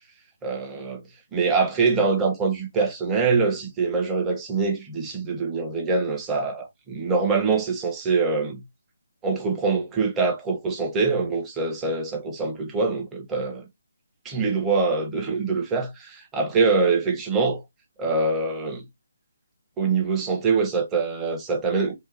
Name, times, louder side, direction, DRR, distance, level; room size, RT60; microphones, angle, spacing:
voice 1, 0.4-1.0 1.3-8.6 9.2-13.7 14.2-17.6 18.0-18.8 19.8-21.9, right 4 dB, 10° right, 0.7 m, -24 dB
3.3 x 2.8 x 3.2 m
figure-of-eight pair, 145°, 0 cm